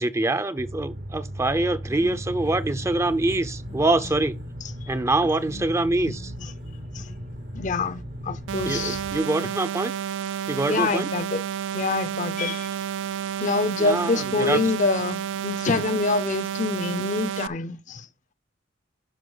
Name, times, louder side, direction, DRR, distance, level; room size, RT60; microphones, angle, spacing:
voice 1, 0.0-4.3 4.9-6.3 8.6-9.9 10.5-11.1 13.8-14.1 14.4-14.6, right 2 dB, 15° right, 0.5 m, -24 dB
sound 1, 0.6-9.2, right 1 dB, 55° right, 0.8 m, -39 dB
sound 2, 1.9-8.6, left 1 dB, 90° left, 3.1 m, -40 dB
voice 2, 7.5-9.0 9.4-9.6 10.7-11.4 11.7-12.7 13.4-18.1, left 3 dB, 45° left, 0.6 m, -26 dB
sound 3, 8.5-17.5, right 9 dB, 80° right, 0.4 m, -30 dB
11.5 x 5.6 x 3.9 m
head